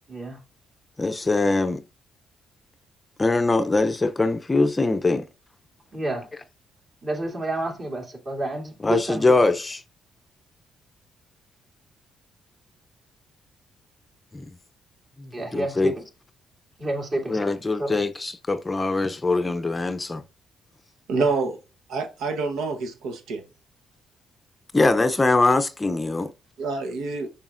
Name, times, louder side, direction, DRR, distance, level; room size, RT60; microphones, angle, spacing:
voice 1, 0.1-0.4 5.9-6.3 7.0-9.2 15.3-16.0 16.8-17.4 17.8-17.9 21.1-21.3, right 1 dB, 40° right, 2.6 m, -29 dB
voice 2, 1.0-1.8 3.2-5.3 8.8-9.8 14.3-14.5 15.2-15.9 17.3-20.2 24.7-26.3, left 3 dB, 20° left, 0.5 m, -22 dB
voice 3, 21.1-21.6 21.9-23.4 26.6-27.3, right 3 dB, 85° right, 0.9 m, -27 dB
7.2 x 5.6 x 2.5 m
cardioid pair, 90°, 0 cm